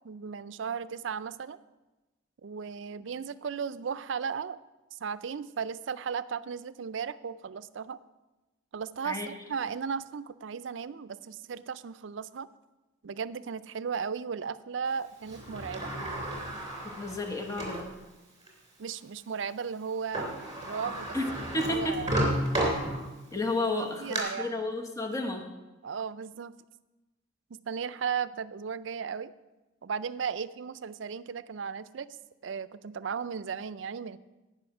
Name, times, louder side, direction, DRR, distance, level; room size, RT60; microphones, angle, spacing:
voice 1, 0.0-1.6 2.4-4.6 4.9-8.0 8.7-12.5 13.0-15.9 18.8-20.3 20.6-21.2 21.6-22.2 24.0-24.6 25.8-26.6 27.7-29.3 29.8-32.1 32.4-34.2, right 6 dB, 70° right, 15 dB, 0.4 m, -35 dB
Sliding door, 15.3-17.9 18.5-18.6 19.9-20.0 20.1-23.3 23.8-24.2, right 1 dB, 20° right, 3.1 m, -32 dB
voice 2, 16.8-17.9 20.9-22.2 23.3-25.5, left 2 dB, 15° left, 3 dB, 1.1 m, -32 dB
17.0 x 5.7 x 6.0 m, 1.1 s
head